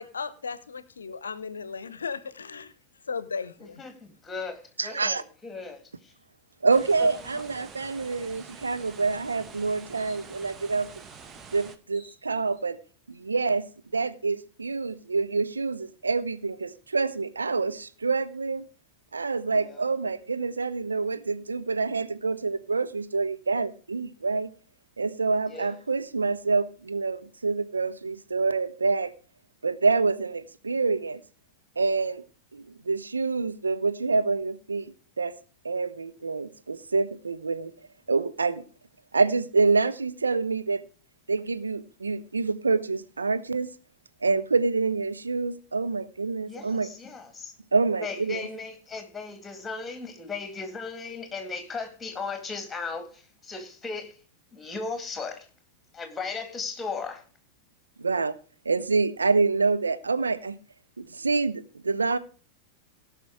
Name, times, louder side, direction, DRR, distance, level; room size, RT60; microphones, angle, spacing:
voice 1, 0.0-2.7 3.1-3.8, left 5 dB, 70° left, 0.7 m, -36 dB
voice 2, 3.6-6.1 7.0-7.3 19.5-19.9 25.4-25.8 46.4-47.5 47.9-54.1 54.5-55.5 55.9-57.2, left 4 dB, 15° left, 2.2 m, -37 dB
voice 3, 4.8-5.2 6.6-10.9 11.5-12.8 13.1-13.6 13.9-18.6 19.1-24.5 25.0-29.1 29.6-31.2 31.8-32.2 32.5-35.3 35.6-37.7 38.1-38.6 39.1-40.8 41.3-43.7 44.2-46.9 47.7-48.5 58.0-58.3 58.7-60.6 61.0-62.2, right 4 dB, 75° right, 0.6 m, -27 dB
sound 1, 6.7-11.8, right 5 dB, 25° right, 1.0 m, -46 dB
sound 2, 8.3-8.9 9.9-10.2 11.4-11.5 11.7-12.6, equal, 60° right, 4.9 m, -56 dB
17.0 x 5.9 x 4.7 m
figure-of-eight pair, 90°, 0 cm